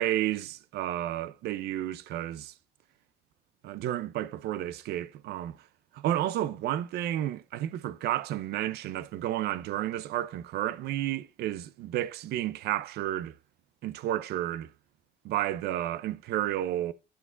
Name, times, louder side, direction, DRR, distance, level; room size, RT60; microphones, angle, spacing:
voice 1, 0.0-2.5 3.6-5.6 5.9-13.3 13.8-14.7 15.2-16.9, right 13 dB, 75° right, 0.6 m, -31 dB
9.6 x 6.0 x 2.5 m
cardioid pair, 110°, 17 cm